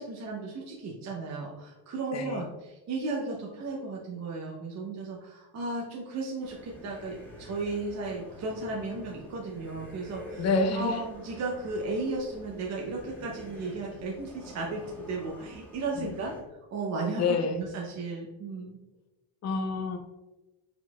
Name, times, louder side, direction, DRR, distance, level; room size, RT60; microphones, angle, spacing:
voice 1, 0.0-10.5 10.7-16.3 16.7-18.8, right 3 dB, 35° right, -2 dB, 0.7 m, -35 dB
voice 2, 2.1-2.4 10.4-11.0 16.0-16.1 17.2-17.6 19.4-20.0, left 4 dB, 35° left, 6 dB, 0.7 m, -28 dB
sound 1, 6.4-16.4, equal, 5° left, 1.4 m, -47 dB
4.9 x 3.8 x 2.3 m, 1.1 s
supercardioid pair, 110°, 48 cm